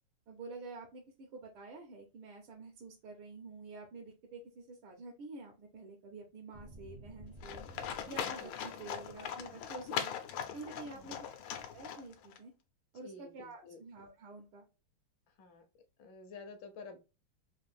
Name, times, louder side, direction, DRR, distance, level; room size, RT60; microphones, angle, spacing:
voice 1, 0.3-7.7 8.1-10.1 10.5-11.3 11.7-12.5 12.9-14.7, right 3 dB, 80° right, 1 dB, 1.6 m, -49 dB
sound 1, 6.5-8.6 9.0-9.4, equal, 45° right, 0.6 m, -53 dB
Livestock farm animals working animals, 7.4-12.4, left 8 dB, 90° left, 1.6 m, -40 dB
voice 2, 8.4-8.7 10.9-11.1 13.0-13.8 15.4-15.6 16.0-17.0, left 3 dB, 70° left, 7 dB, 1.3 m, -50 dB
4.1 x 2.5 x 3.2 m, 0.30 s
omnidirectional pair, 2.3 m